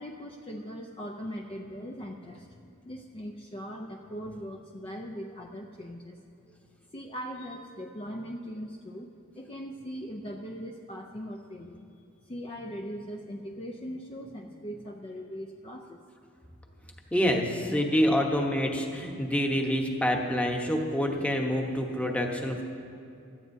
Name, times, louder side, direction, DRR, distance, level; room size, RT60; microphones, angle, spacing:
voice 1, 0.0-6.2 6.4-6.6 6.9-11.9 12.3-16.0, equal, 30° left, 2 dB, 0.5 m, -40 dB
voice 2, 17.1-22.6, equal, 5° left, 1 dB, 1.0 m, -27 dB
17.0 x 13.0 x 2.7 m, 2.6 s
head